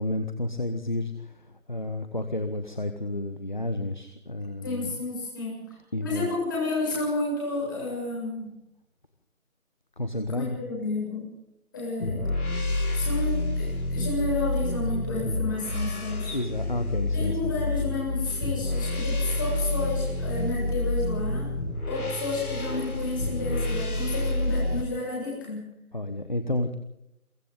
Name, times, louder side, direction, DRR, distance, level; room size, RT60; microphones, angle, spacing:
voice 1, 0.0-4.9 5.9-6.3 10.0-10.6 16.3-17.7 25.9-26.7, left 1 dB, 35° left, 9 dB, 1.1 m, -31 dB
voice 2, 4.6-5.8 6.0-8.5 10.3-11.3 11.7-12.3 12.9-16.4 17.1-21.5 21.9-25.7, left 3 dB, 15° left, -6 dB, 7.3 m, -31 dB
sound 1, 12.0-24.8, left 2 dB, 80° left, 5.5 m, -28 dB
30.0 x 23.0 x 3.8 m, 0.85 s
figure-of-eight pair, 175°, 44 cm